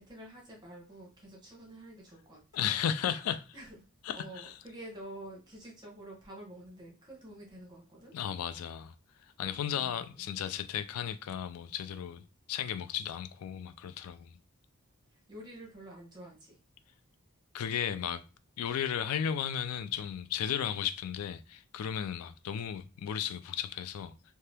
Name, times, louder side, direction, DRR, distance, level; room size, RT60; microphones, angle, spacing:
voice 1, 0.0-2.4 3.5-3.8 4.1-8.1 9.7-10.3 15.1-16.6, right 1 dB, 20° right, 0.9 m, -48 dB
voice 2, 2.5-3.5 4.0-4.6 8.1-8.9 9.4-14.4 17.5-18.2 18.6-24.1, left 9 dB, 80° left, 0.3 m, -35 dB
2.7 x 2.2 x 3.3 m
head